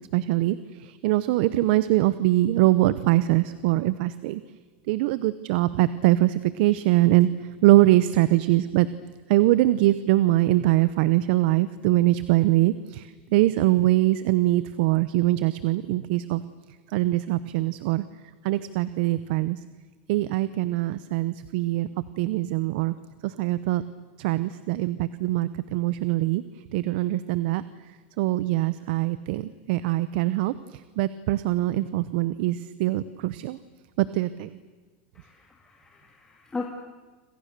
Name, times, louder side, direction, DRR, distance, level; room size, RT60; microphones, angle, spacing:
voice 1, 0.1-4.4 4.9-7.3 7.6-8.9 9.3-16.4 16.9-18.0 18.4-19.6 20.1-21.9 22.2-22.9 23.2-23.8 24.2-26.4 26.7-27.6 28.2-33.6 34.0-34.6, right 16 dB, 65° right, 15 dB, 0.9 m, -23 dB
voice 2, 35.1-36.6, left 3 dB, 10° left, 1 dB, 2.5 m, -37 dB
29.0 x 27.0 x 6.8 m, 1.3 s
supercardioid pair, 140°, 6 cm